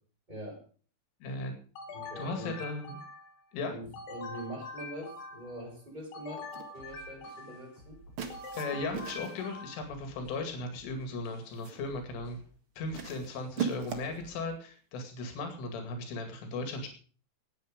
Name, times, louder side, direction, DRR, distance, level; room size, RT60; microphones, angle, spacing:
voice 1, 0.3-0.6 1.9-2.6 3.7-8.0, equal, 10° right, 1 dB, 5.0 m, -43 dB
voice 2, 1.2-1.5 2.2-3.0 3.5-3.8 8.6-12.4 12.8-16.9, left 3 dB, 90° left, 6 dB, 4.8 m, -37 dB
sound 1, 1.8-3.4 3.9-5.6 6.1-7.8 8.3-10.0, left 2 dB, 60° left, 4.0 m, -44 dB
Tupperware with cereal handling open lid, 6.4-6.7 8.2-9.5 10.5-10.9 11.3-11.9 12.9-14.2, right 7 dB, 75° right, 1.2 m, -39 dB
sound 2, 6.8-14.6, right 1 dB, 30° left, 6.8 m, -56 dB
17.5 x 9.5 x 5.1 m, 0.41 s
omnidirectional pair, 5.5 m